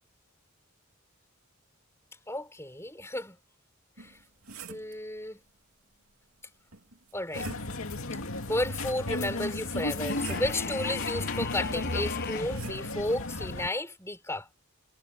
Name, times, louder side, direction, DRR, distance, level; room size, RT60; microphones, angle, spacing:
voice 1, 2.3-3.4 4.0-4.2 4.7-5.4 7.1-7.5 8.5-14.5, left 1 dB, 10° left, 4.4 m, -33 dB
sound 1, 4.0-5.0 6.7-8.0 9.4-10.7 12.0-12.9, right 4 dB, 85° right, 2.8 m, -45 dB
sound 2, 7.3-13.7, left 2 dB, 70° left, 2.5 m, -34 dB
sound 3, 10.1-12.6, left 4 dB, 45° left, 1.3 m, -36 dB
head